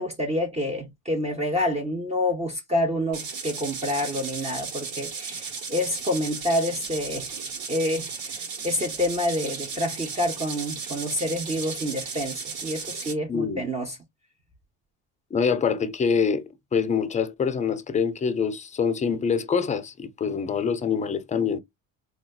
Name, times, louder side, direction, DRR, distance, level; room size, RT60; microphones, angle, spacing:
voice 1, 0.0-7.3 7.7-14.0, left 1 dB, 20° right, 0.7 m, -28 dB
sound 1, 3.1-13.1, right 5 dB, 70° right, 1.4 m, -35 dB
voice 2, 13.3-13.6 15.3-16.4 16.7-21.6, left 6 dB, 20° left, 0.4 m, -25 dB
4.0 x 2.3 x 2.3 m
supercardioid pair, 95°, 37 cm